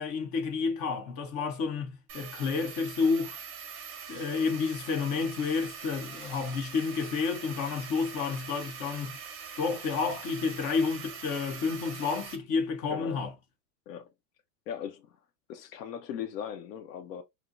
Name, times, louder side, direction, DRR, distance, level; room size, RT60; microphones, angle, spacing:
voice 1, 0.0-3.4 4.1-9.2 9.6-13.3, left 5 dB, 30° left, 0.9 m, -30 dB
sound 1, 2.1-12.4, right 7 dB, 25° right, 0.9 m, -43 dB
voice 2, 12.9-13.2 13.9-14.1 14.7-15.2 15.5-17.2, left 9 dB, 80° left, 0.8 m, -39 dB
4.4 x 2.1 x 2.4 m
supercardioid pair, 150°, 48 cm